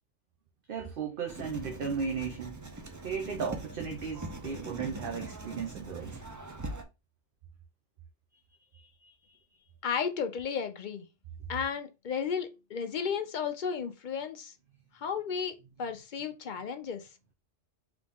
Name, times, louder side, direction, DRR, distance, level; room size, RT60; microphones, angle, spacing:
voice 1, 0.7-2.6 3.0-6.2 8.7-9.1, right 6 dB, 55° right, 0.8 m, -36 dB
Writing, 1.3-6.8, right 2 dB, 25° right, 0.4 m, -42 dB
voice 2, 9.8-11.1 11.5-14.5 14.9-17.1, left 6 dB, 50° left, 0.6 m, -34 dB
4.0 x 3.1 x 3.5 m
omnidirectional pair, 1.2 m